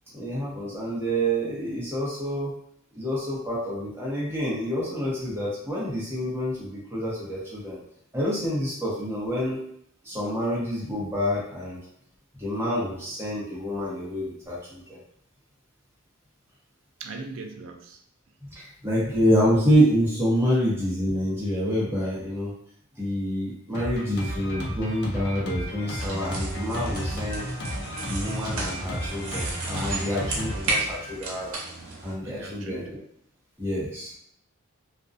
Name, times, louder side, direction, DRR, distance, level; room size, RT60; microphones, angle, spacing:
voice 1, 0.1-2.5 2.9-7.8 8.1-9.6 10.0-11.8 12.4-15.0 18.4-22.5 23.0-27.5 28.1-31.6 32.0-33.0 33.6-34.1, equal, 10° right, -6 dB, 0.8 m, -27 dB
voice 2, 17.0-18.0 32.2-33.0, right 3 dB, 65° right, 3 dB, 0.4 m, -39 dB
Drum kit, 23.7-31.5, equal, 55° left, 0.5 m, -34 dB
sound 1, 26.0-32.1, right 2 dB, 90° right, 0.7 m, -33 dB
2.4 x 2.1 x 2.5 m, 0.69 s
head